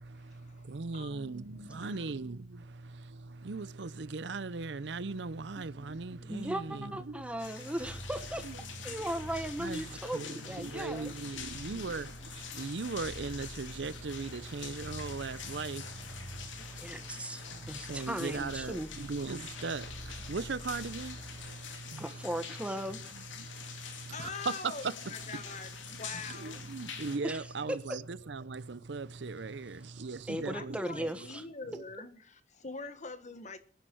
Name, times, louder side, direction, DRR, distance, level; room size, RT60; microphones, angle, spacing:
voice 1, 0.0-7.2 8.4-8.6 8.9-9.0 9.6-22.3 23.1-24.9 25.3-25.4 26.1-31.0 31.7-31.8, right 4 dB, 65° right, 0.6 m, -39 dB
voice 2, 0.9-2.2 24.1-26.7 30.4-33.6, left 4 dB, 40° left, 1.5 m, -44 dB
voice 3, 5.6-5.9 6.2-8.4 8.8-11.1 16.8-18.9 22.0-23.0 27.2-27.8 30.3-31.4, right 1 dB, 5° right, 1.3 m, -37 dB
sound 1, 7.4-27.2, left 7 dB, 90° left, 2.7 m, -46 dB
sound 2, 7.8-21.9, equal, 10° left, 1.6 m, -49 dB
23.5 x 10.5 x 4.5 m
head